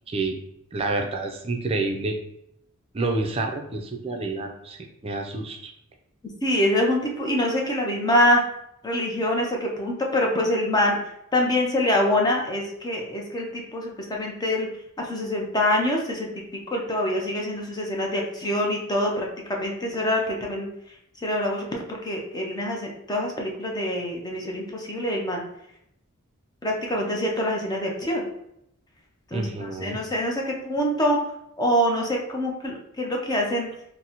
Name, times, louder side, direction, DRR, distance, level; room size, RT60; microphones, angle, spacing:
voice 1, 0.7-2.2 2.9-5.7 29.3-30.0, right 3 dB, 30° right, 3 dB, 0.4 m, -28 dB
voice 2, 6.4-8.4 8.8-11.0 11.3-14.7 15.0-16.3 16.7-19.3 19.6-20.7 21.2-25.4 26.6-28.2 29.3-31.2 31.6-33.7, left 1 dB, 20° left, 0 dB, 0.5 m, -25 dB
3.9 x 2.1 x 2.8 m, 0.78 s
head